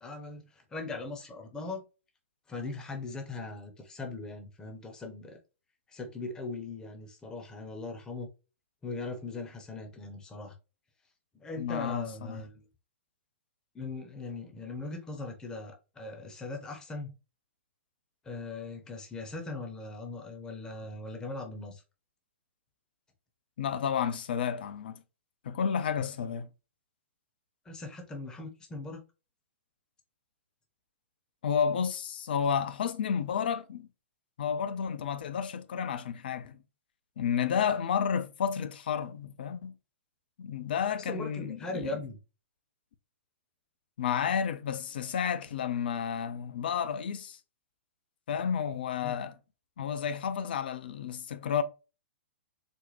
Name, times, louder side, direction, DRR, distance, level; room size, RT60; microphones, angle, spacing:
voice 1, 0.0-1.8 2.5-5.4 5.9-8.3 8.8-10.5 11.4-12.6 13.7-17.1 18.2-21.8 27.6-29.0 41.0-42.2 49.0-49.2, left 3 dB, 10° left, 0.8 m, -40 dB
voice 2, 11.6-12.4 23.6-25.0 25.4-26.5 31.4-33.9 34.4-36.6 37.2-39.8 40.4-42.0 44.0-47.4 48.3-49.4 49.8-51.6, left 7 dB, 50° left, 0.5 m, -31 dB
4.2 x 2.1 x 3.1 m
figure-of-eight pair, 110°, 7 cm